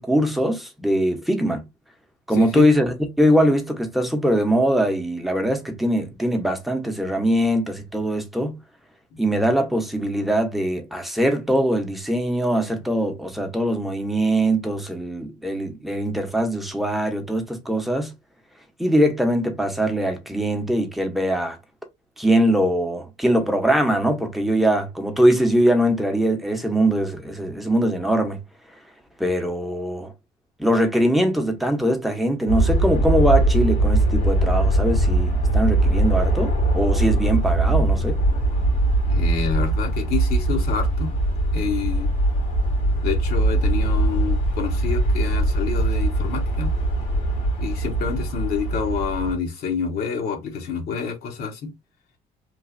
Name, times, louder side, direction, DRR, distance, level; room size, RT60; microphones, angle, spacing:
voice 1, 0.0-1.6 2.3-8.6 9.2-18.1 18.8-21.6 22.2-28.4 29.2-30.1 30.6-38.2, equal, ahead, 0.8 m, -22 dB
voice 2, 2.3-2.7 39.1-41.1 41.5-42.1 43.0-46.7 47.6-51.7, left 6 dB, 65° left, 1.0 m, -28 dB
sound 1, 32.5-49.3, right 1 dB, 85° left, 1.6 m, -21 dB
3.1 x 2.3 x 2.4 m
cardioid pair, 110°, 17 cm